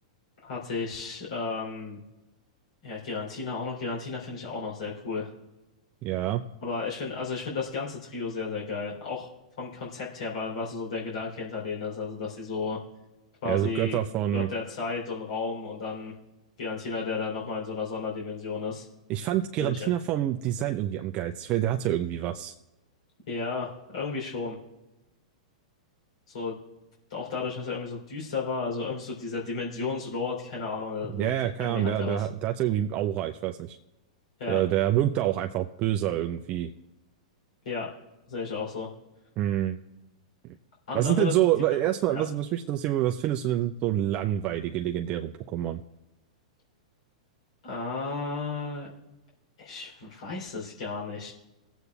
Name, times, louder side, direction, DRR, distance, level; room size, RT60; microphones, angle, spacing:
voice 1, 0.4-2.0 2.8-5.3 6.6-9.3 9.6-12.8 13.4-14.0 14.3-16.1 16.6-18.9 19.6-19.9 23.3-24.6 26.3-26.6 27.1-31.3 31.6-32.3 34.4-34.6 37.7-37.9 38.3-38.9 40.9-41.3 42.1-42.2 47.6-48.9 49.6-51.3, left 4 dB, 70° left, -4 dB, 3.5 m, -33 dB
voice 2, 6.0-6.4 13.4-14.5 19.1-22.5 31.1-33.8 34.5-36.7 39.4-39.8 40.9-45.8, right 12 dB, 35° right, 4 dB, 0.5 m, -27 dB
20.0 x 8.1 x 2.4 m, 0.98 s
hypercardioid pair, 115°, 4 cm